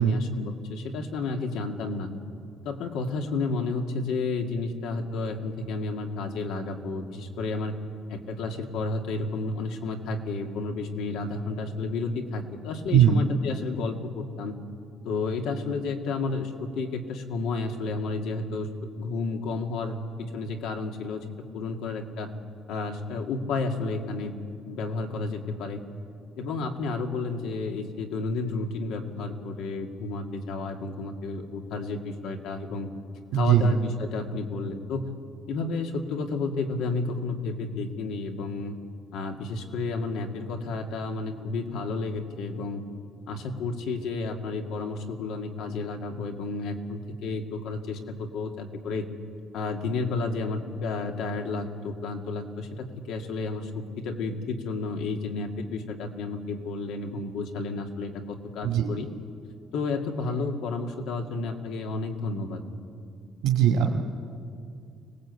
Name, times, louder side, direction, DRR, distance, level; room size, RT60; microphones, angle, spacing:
voice 1, 0.0-2.1 2.6-7.7 8.1-14.6 15.0-18.7 19.0-21.2 21.5-22.3 22.7-24.3 24.6-25.8 26.4-32.9 33.3-35.1 35.5-38.8 39.1-42.8 43.3-49.1 49.5-59.1 59.7-62.6, left 3 dB, 75° left, 4 dB, 2.2 m, -31 dB
voice 2, 12.9-13.2 33.3-33.7 58.6-58.9 63.4-64.0, right 9 dB, 80° right, 1 dB, 1.8 m, -20 dB
25.5 x 19.0 x 8.2 m, 2.4 s
cardioid pair, 175°, 0 cm